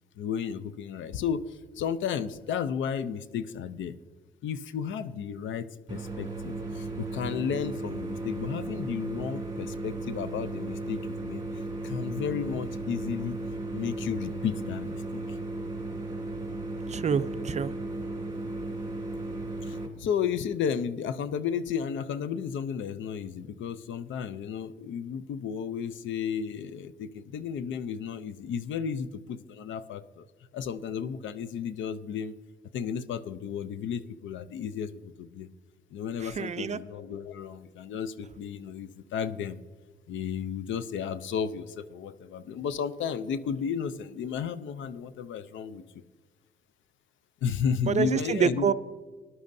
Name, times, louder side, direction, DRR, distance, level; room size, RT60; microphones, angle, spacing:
voice 1, 0.2-3.9 4.4-13.4 13.7-15.4 19.6-30.3 30.5-32.4 32.7-35.5 35.9-39.6 40.1-45.8 47.4-48.7, left 7 dB, 75° left, 14 dB, 0.6 m, -33 dB
sound 1, 5.9-19.9, right 2 dB, 20° right, 2.7 m, -35 dB
voice 2, 16.9-17.7 36.2-36.8 47.9-48.7, right 7 dB, 35° right, 14 dB, 0.4 m, -27 dB
18.5 x 11.0 x 2.7 m, 1.3 s
cardioid pair, 90°, 20 cm